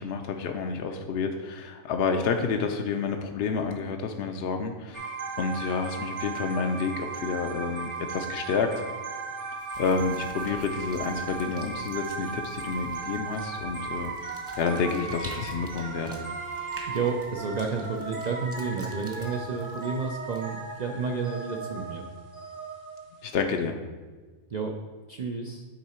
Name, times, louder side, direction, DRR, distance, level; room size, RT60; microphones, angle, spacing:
voice 1, 0.0-8.8 9.8-16.2 23.2-23.8, left 5 dB, 65° left, 4 dB, 0.6 m, -29 dB
sound 1, 4.9-23.3, right 4 dB, 45° right, 0.9 m, -37 dB
sound 2, 9.6-20.8, right 1 dB, 15° right, 0.5 m, -49 dB
Bowed string instrument, 14.1-17.5, equal, 65° right, 1.5 m, -51 dB
voice 2, 16.9-22.0 24.5-24.8 25.1-25.6, right 5 dB, 80° right, 2 dB, 0.3 m, -31 dB
8.7 x 3.8 x 4.3 m, 1.4 s
omnidirectional pair, 1.4 m